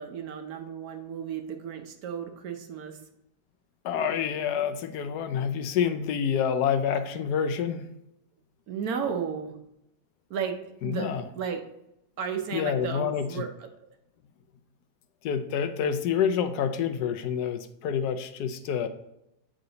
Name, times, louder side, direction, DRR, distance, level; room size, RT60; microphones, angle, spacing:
voice 1, 0.0-3.0 8.7-9.6 10.3-10.6 10.8-11.6 12.2-13.7, right 7 dB, 65° right, 5 dB, 1.2 m, -34 dB
voice 2, 3.8-7.9 10.8-11.2 12.5-13.4 15.2-18.9, left 7 dB, 75° left, 9 dB, 1.1 m, -27 dB
8.1 x 3.8 x 3.9 m, 0.82 s
omnidirectional pair, 1.8 m